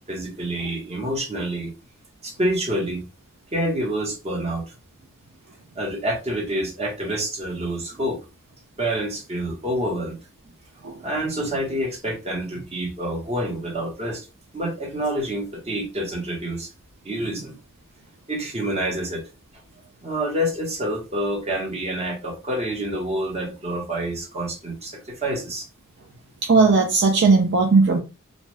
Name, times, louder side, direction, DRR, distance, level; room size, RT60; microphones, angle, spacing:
voice 1, 0.1-1.7 2.2-3.0 3.5-4.7 5.8-8.2 8.8-10.2 11.0-14.3 14.5-16.7 17.0-17.5 18.3-19.2 20.0-25.7, right 1 dB, 30° right, 1.0 m, -27 dB
voice 2, 26.4-28.0, right 4 dB, 55° right, 0.5 m, -17 dB
2.6 x 2.3 x 3.2 m
head